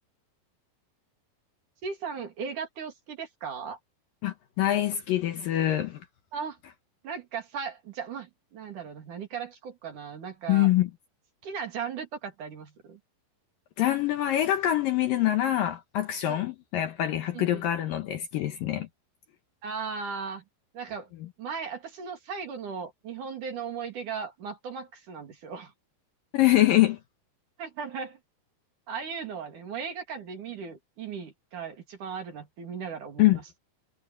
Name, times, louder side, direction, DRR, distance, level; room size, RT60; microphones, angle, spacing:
voice 1, 1.8-3.8 6.3-6.6 7.0-10.7 11.4-13.0 16.3-16.4 17.3-17.7 19.6-20.4 20.7-21.1 21.4-25.7 27.6-28.2 28.9-33.4, right 6 dB, 50° right, 3.6 m, -37 dB
voice 2, 4.2-6.1 10.5-10.9 13.8-18.9 26.3-27.0 33.2-33.4, left 13 dB, 70° left, 2.4 m, -24 dB
omnidirectional pair, 4.9 m